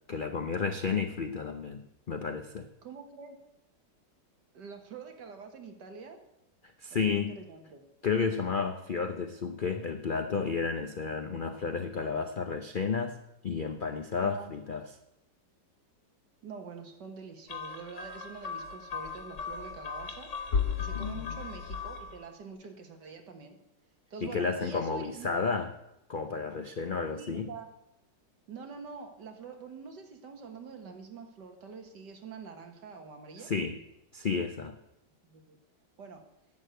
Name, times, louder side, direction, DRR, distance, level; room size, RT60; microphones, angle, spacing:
voice 1, 0.1-2.7 6.8-7.4 8.0-13.2 13.4-14.9 20.9-21.4 24.2-25.7 26.1-27.5 33.4-33.8 34.1-34.7, left 5 dB, 80° left, 7 dB, 0.4 m, -32 dB
voice 2, 2.8-3.4 4.5-6.2 6.9-7.8 14.2-14.5 16.4-20.3 20.8-23.6 24.1-25.3 27.2-27.7 28.5-33.5 35.3-35.6 36.0-36.3, right 5 dB, 70° right, 4 dB, 2.1 m, -45 dB
sound 1, 17.5-22.2, left 6 dB, 50° left, 1.2 m, -35 dB
11.0 x 6.8 x 7.8 m, 0.86 s
omnidirectional pair, 1.9 m